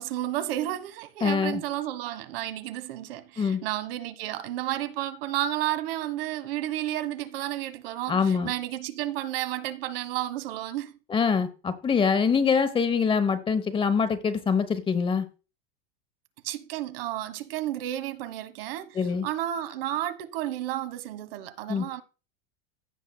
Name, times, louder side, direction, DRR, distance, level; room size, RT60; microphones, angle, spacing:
voice 1, 0.0-10.9 16.4-22.0, right 13 dB, 75° right, 1.1 m, -32 dB
voice 2, 1.2-1.6 3.4-3.6 8.1-8.5 11.1-15.2 18.9-19.3 21.7-21.9, left 6 dB, 20° left, 0.9 m, -24 dB
15.5 x 6.2 x 2.2 m
supercardioid pair, 130°, 29 cm